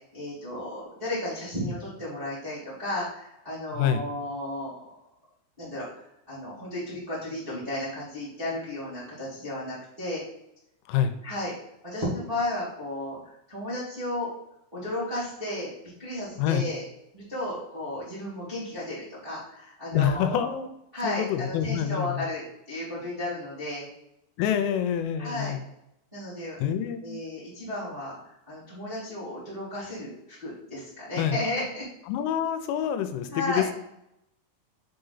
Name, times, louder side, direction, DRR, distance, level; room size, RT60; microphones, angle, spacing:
voice 1, 0.1-4.9 5.6-10.2 11.2-11.5 11.8-14.3 14.7-15.7 16.0-16.8 17.1-20.5 20.9-23.9 25.2-25.5 26.1-26.6 27.0-31.8 33.3-33.6, left 1 dB, 25° right, -10 dB, 1.1 m, -34 dB
voice 2, 3.7-4.0 10.9-11.1 16.4-16.6 19.9-20.7 21.0-22.2 24.4-25.6 26.6-27.2 31.2-31.4 32.1-33.7, left 9 dB, 85° left, 9 dB, 3.1 m, -26 dB
7.1 x 3.9 x 4.0 m, 0.81 s
omnidirectional pair, 5.6 m